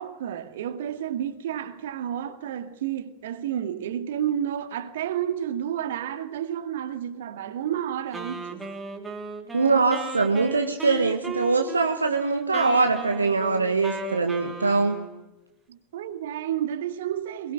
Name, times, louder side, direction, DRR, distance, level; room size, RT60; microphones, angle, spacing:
voice 1, 0.0-8.6 15.7-17.5, right 10 dB, 55° right, 2.2 m, -31 dB
Wind instrument woodwind instrument, 8.1-15.3, right 3 dB, 15° right, 3.7 m, -36 dB
voice 2, 9.5-15.0, right 4 dB, 75° right, 1.6 m, -23 dB
22.5 x 20.5 x 9.0 m
figure-of-eight pair, 90°, 0 cm